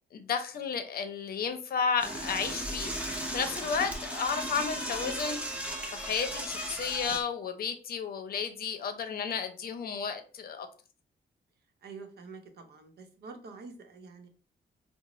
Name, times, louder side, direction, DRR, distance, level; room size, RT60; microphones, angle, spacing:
voice 1, 0.1-10.7, left 6 dB, 60° left, 8 dB, 0.6 m, -33 dB
Door / Toilet flush, 2.0-7.2, equal, 5° right, 0.8 m, -36 dB
voice 2, 11.8-14.3, right 4 dB, 70° right, 5 dB, 0.8 m, -47 dB
4.8 x 2.0 x 3.0 m, 0.40 s
cardioid pair, 120°, 17 cm